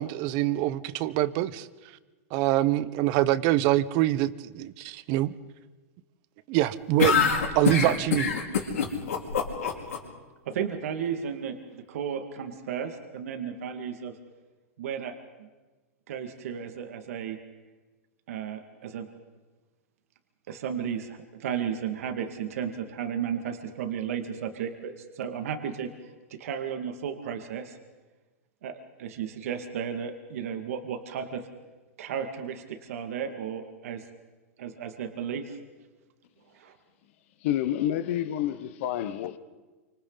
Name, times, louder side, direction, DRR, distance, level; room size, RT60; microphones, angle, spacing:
voice 1, 0.0-1.7 2.3-5.3 6.5-7.2 7.5-8.3, right 15 dB, 45° right, 1.1 m, -25 dB
sound 1, 7.0-10.0, left 6 dB, 85° left, 4.8 m, -24 dB
voice 2, 10.5-14.1 14.8-15.5 16.1-17.4 18.3-19.1 20.5-25.9 26.3-27.8 28.6-31.5 32.0-34.0 34.6-35.6 36.5-36.8, right 8 dB, 70° right, 2.3 m, -34 dB
voice 3, 37.4-39.4, left 11 dB, 60° left, 1.3 m, -28 dB
28.5 x 26.0 x 4.2 m
hypercardioid pair, 130°, 8 cm